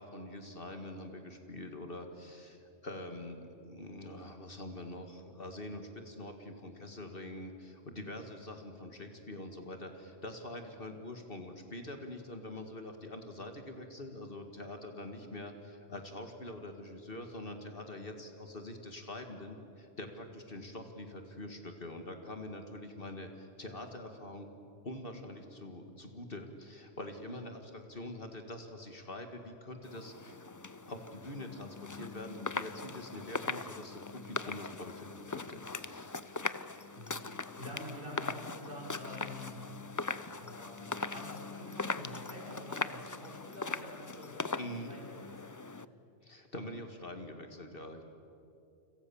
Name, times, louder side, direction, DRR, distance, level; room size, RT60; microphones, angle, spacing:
voice 1, 0.0-24.5 24.8-30.4 30.9-36.2 44.5-45.0 46.2-48.0, left 1 dB, 50° left, 5 dB, 2.3 m, -45 dB
sound 1, 29.8-45.8, left 3 dB, 25° left, 0.5 m, -40 dB
voice 2, 37.6-39.7 40.4-45.5, left 1 dB, 45° right, -1 dB, 6.9 m, -47 dB
30.0 x 26.0 x 7.2 m, 2.7 s
omnidirectional pair, 1.2 m